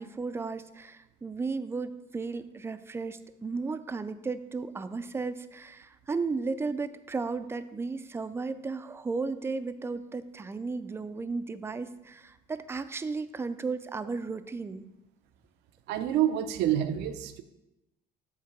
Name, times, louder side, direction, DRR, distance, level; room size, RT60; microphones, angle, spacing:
voice 1, 0.0-14.9, right 4 dB, 15° right, 12 dB, 0.3 m, -34 dB
voice 2, 15.9-17.4, right 11 dB, 85° right, 9 dB, 0.5 m, -27 dB
7.5 x 3.2 x 5.9 m, 0.94 s
cardioid pair, 110°, 17 cm